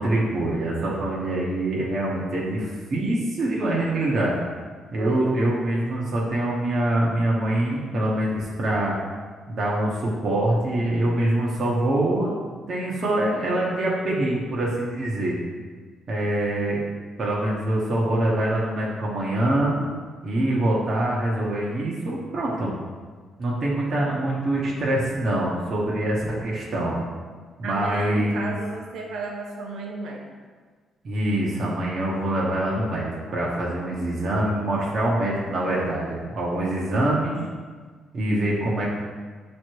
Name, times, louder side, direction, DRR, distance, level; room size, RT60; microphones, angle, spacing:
voice 1, 0.0-4.3 4.9-8.9 9.5-12.3 12.7-15.3 16.1-16.8 17.2-19.8 20.2-22.7 23.4-27.0 27.6-28.5 31.0-37.4 38.1-38.9, right 1 dB, 50° right, -5 dB, 1.3 m, -24 dB
voice 2, 5.0-5.3 27.6-30.2 33.3-33.4, right 3 dB, 75° right, 0 dB, 1.1 m, -34 dB
7.2 x 3.3 x 4.6 m, 1.5 s
cardioid pair, 90°, 0 cm